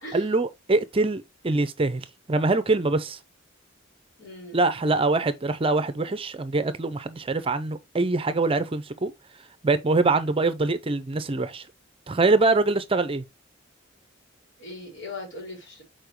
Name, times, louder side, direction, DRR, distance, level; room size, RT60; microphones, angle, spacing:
voice 1, 0.1-3.2 4.5-9.1 9.6-11.6 12.1-13.2, right 3 dB, 30° right, 0.6 m, -24 dB
voice 2, 4.2-4.8 14.6-15.8, left 2 dB, 70° left, 3.7 m, -39 dB
7.0 x 4.4 x 3.0 m
head